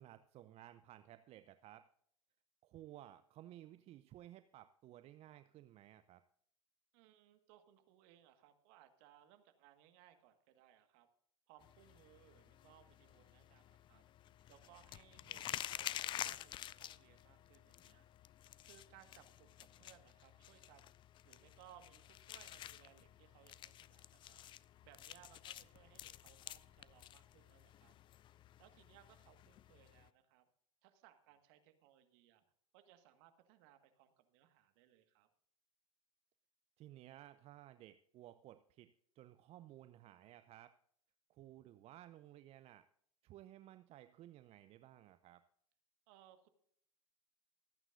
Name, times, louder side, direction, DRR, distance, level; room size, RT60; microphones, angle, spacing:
voice 1, 0.0-1.9 2.6-6.2 15.3-15.6 36.8-40.7 41.3-42.9 43.2-45.4, right 13 dB, 35° right, 12 dB, 0.6 m, -57 dB
voice 2, 6.9-11.1 11.5-14.0 14.5-18.1 18.6-20.9 21.2-24.4 24.8-27.9 28.6-30.5 30.8-32.4 32.7-35.3 46.1-46.5, right 11 dB, 55° right, 8 dB, 1.6 m, -65 dB
sound 1, 11.6-30.1, left 12 dB, 30° left, 0.4 m, -50 dB
25.5 x 9.0 x 2.6 m, 0.68 s
figure-of-eight pair, 85°, 17 cm